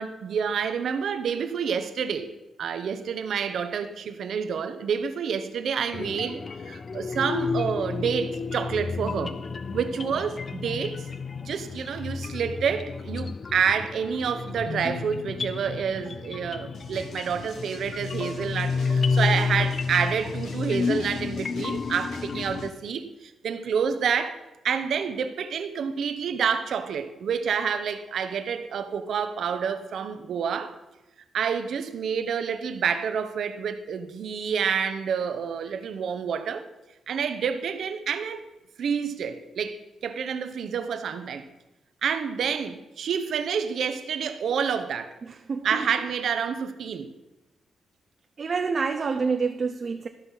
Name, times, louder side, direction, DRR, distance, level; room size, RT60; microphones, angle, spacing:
voice 1, 0.0-2.3 2.6-9.4 9.7-11.1 11.4-24.4 24.6-30.7 31.3-36.7 37.1-38.5 38.8-41.5 42.0-45.1 45.6-47.1, right 7 dB, 70° right, 0.9 m, -28 dB
sound 1, 5.9-22.7, left 4 dB, 40° left, 0.4 m, -31 dB
sound 2, 16.7-22.7, left 3 dB, 80° left, 2.1 m, -45 dB
voice 2, 45.5-45.8 48.4-50.1, right 5 dB, 45° right, 0.6 m, -27 dB
12.5 x 5.7 x 5.6 m
cardioid pair, 90°, 0 cm